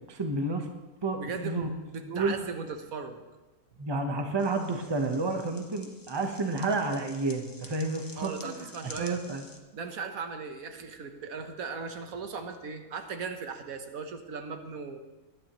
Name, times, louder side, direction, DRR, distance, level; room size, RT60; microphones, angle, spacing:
voice 1, 0.1-0.7 1.0-1.7 2.0-2.3 3.8-9.5, right 3 dB, 20° right, 4 dB, 1.0 m, -30 dB
voice 2, 1.1-1.6 1.9-3.2 8.2-9.2 9.7-15.0, right 5 dB, 80° right, 6 dB, 1.5 m, -38 dB
sound 1, 4.4-9.6, left 2 dB, 20° left, 0.8 m, -50 dB
20.5 x 10.0 x 3.1 m, 1.2 s
omnidirectional pair, 1.5 m